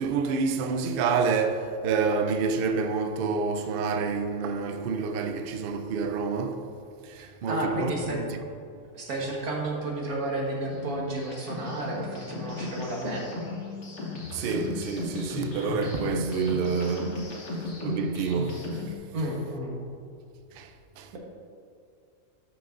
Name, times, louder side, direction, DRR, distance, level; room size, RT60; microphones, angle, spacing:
voice 1, 0.0-6.7 7.0-8.4 14.3-17.2 17.5-19.0 20.5-20.7 21.0-21.1, right 5 dB, 65° right, 0.5 m, -28 dB
voice 2, 7.5-8.2 8.9-13.3 19.1-19.8, right 1 dB, 90° right, 1.8 m, -31 dB
sound 1, 10.7-19.0, left 2 dB, 55° left, 1.7 m, -35 dB
12.5 x 6.0 x 2.6 m
omnidirectional pair, 1.5 m